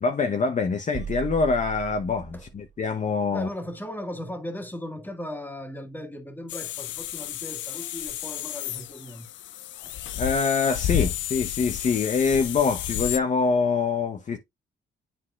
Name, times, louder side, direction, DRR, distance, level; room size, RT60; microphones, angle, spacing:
voice 1, 0.0-3.5 10.1-14.4, left 4 dB, 40° left, 0.9 m, -25 dB
sound 1, 0.9-2.8, right 8 dB, 40° right, 0.4 m, -37 dB
voice 2, 3.3-9.3 9.8-9.9, left 1 dB, 10° left, 1.7 m, -37 dB
Dental Handpiece, 6.5-13.2, left 11 dB, 70° left, 0.5 m, -31 dB
10.0 x 4.1 x 2.4 m
cardioid pair, 90°, 20 cm